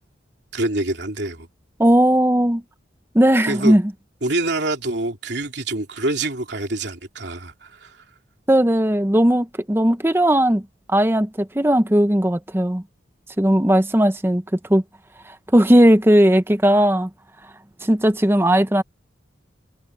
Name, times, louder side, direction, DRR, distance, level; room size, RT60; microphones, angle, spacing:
voice 1, 0.5-1.5 3.5-3.7 4.2-8.0, right 2 dB, 60° right, 3.1 m, -26 dB
voice 2, 1.8-2.6 3.1-3.8 8.5-10.6 10.9-12.8 13.4-14.8 15.5-17.1 17.8-18.8, right 1 dB, 10° right, 0.7 m, -17 dB
head